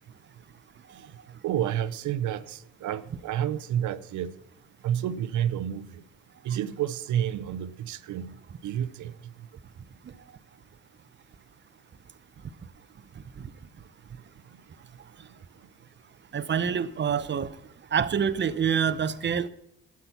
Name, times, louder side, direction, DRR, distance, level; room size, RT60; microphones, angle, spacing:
voice 1, 1.4-4.3 4.8-6.0 6.4-8.4 8.6-9.1, right 10 dB, 75° right, 0.8 m, -30 dB
voice 2, 16.3-17.5 17.9-19.5, right 7 dB, 40° right, 0.8 m, -26 dB
12.0 x 8.6 x 5.8 m
cardioid pair, 90°, 30 cm